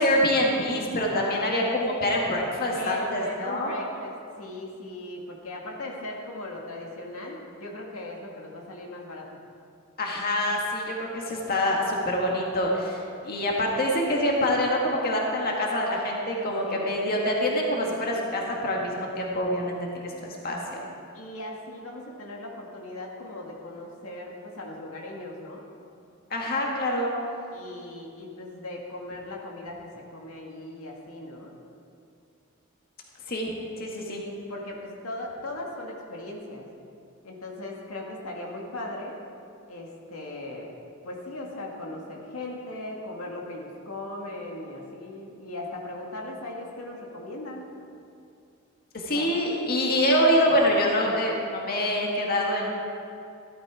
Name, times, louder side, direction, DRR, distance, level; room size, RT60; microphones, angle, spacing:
voice 1, 0.0-3.7 10.0-20.8 26.3-27.1 33.3-34.2 48.9-52.7, left 1 dB, 45° left, -1 dB, 1.9 m, -25 dB
voice 2, 1.0-1.6 2.7-9.3 16.6-17.0 21.1-25.6 27.5-31.5 34.5-36.7 37.2-39.2 39.7-40.7 41.0-47.7 49.1-49.3, left 2 dB, 85° left, -1 dB, 2.1 m, -38 dB
14.5 x 13.0 x 4.9 m, 2.5 s
head